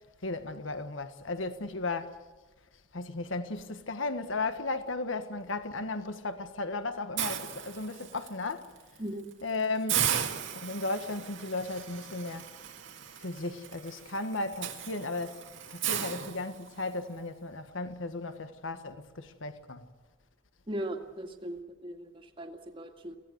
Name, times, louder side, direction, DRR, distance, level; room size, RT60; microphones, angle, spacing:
voice 1, 0.2-2.1 2.9-8.7 9.4-10.1 10.5-12.4 13.2-15.4 15.7-19.9, left 3 dB, 80° left, 1.5 m, -35 dB
Hiss, 7.2-8.3 8.8-9.0 9.3-9.4 9.9-17.0, right 9 dB, 70° right, 2.0 m, -35 dB
voice 2, 20.7-23.2, right 1 dB, 25° right, 2.0 m, -38 dB
23.5 x 17.0 x 8.0 m
head